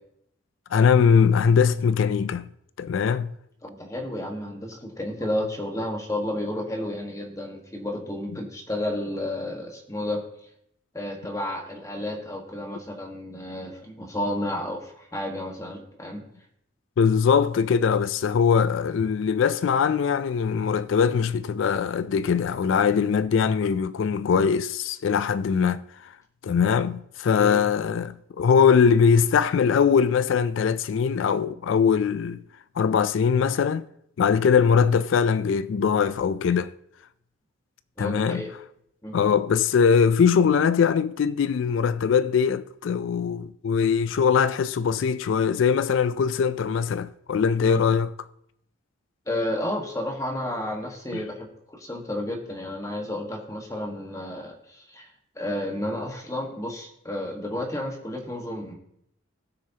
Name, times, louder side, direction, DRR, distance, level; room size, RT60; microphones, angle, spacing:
voice 1, 0.7-2.5 2.8-3.3 17.0-26.1 26.4-32.4 32.8-33.9 34.2-36.7 38.0-38.5 39.1-48.3 51.1-51.2, left 6 dB, 70° left, 0.3 m, -21 dB
voice 2, 3.6-10.3 10.9-16.2 27.4-27.6 38.0-38.5 39.0-39.2 47.6-47.8 49.3-55.1 55.3-58.7, left 1 dB, 15° left, 1.4 m, -31 dB
18.0 x 6.3 x 2.8 m
head